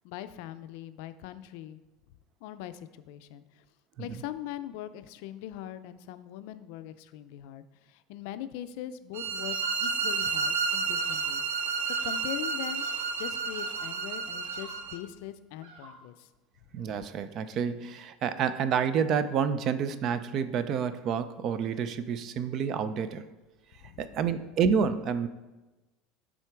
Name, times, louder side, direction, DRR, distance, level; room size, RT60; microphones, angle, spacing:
voice 1, 0.0-1.8 2.4-3.6 4.0-12.9 13.2-16.3 23.8-24.0, left 12 dB, 65° left, 12 dB, 0.4 m, -41 dB
sound 1, 9.1-15.0, right 5 dB, 85° right, 0.8 m, -31 dB
Bird vocalization bird call bird song, 9.4-9.8 10.1-10.5 11.0-11.4 11.8-12.4 12.7-13.2 13.5-14.0 14.4-14.9 15.6-16.1, right 3 dB, 70° right, 1.4 m, -49 dB
voice 2, 16.7-23.2 24.0-25.3, right 7 dB, 35° right, 12 dB, 0.4 m, -29 dB
10.5 x 3.8 x 4.6 m, 1.1 s
cardioid pair, 160°, 0 cm